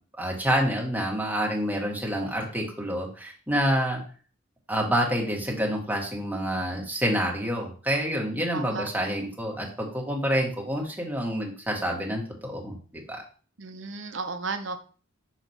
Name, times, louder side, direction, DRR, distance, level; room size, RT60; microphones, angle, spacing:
voice 1, 0.2-4.0 4.7-13.2, equal, 10° right, -1 dB, 1.5 m, -28 dB
voice 2, 8.5-8.9 13.6-14.8, right 4 dB, 75° right, 7 dB, 0.8 m, -34 dB
6.4 x 3.1 x 5.4 m, 0.40 s
head